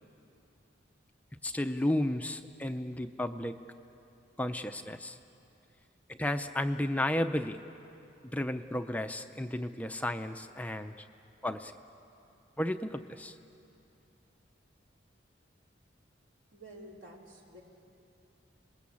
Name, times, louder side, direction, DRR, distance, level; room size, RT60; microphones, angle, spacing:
voice 1, 1.4-3.6 4.4-5.2 6.2-7.6 8.2-11.1 11.4-11.7 12.6-13.3, left 1 dB, 10° left, 8 dB, 0.5 m, -33 dB
voice 2, 16.5-17.6, right 1 dB, 70° right, -2 dB, 4.0 m, -50 dB
28.0 x 21.0 x 8.6 m, 2.7 s
head